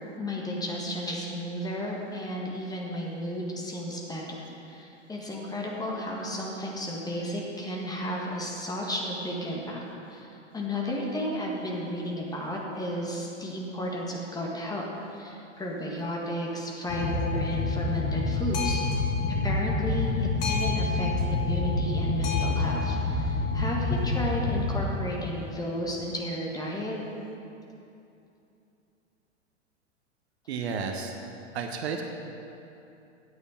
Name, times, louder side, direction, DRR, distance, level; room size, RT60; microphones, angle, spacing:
voice 1, 0.2-9.8 10.1-14.8 15.1-18.9 19.4-27.0, equal, 10° left, -2 dB, 1.6 m, -33 dB
Boat Water vehicle, 16.9-24.8, left 3 dB, 45° left, 1.9 m, -27 dB
voice 2, 30.5-31.2 31.5-32.0, right 5 dB, 55° right, 4 dB, 1.0 m, -32 dB
9.5 x 8.3 x 5.9 m, 2.8 s
figure-of-eight pair, 95°, 37 cm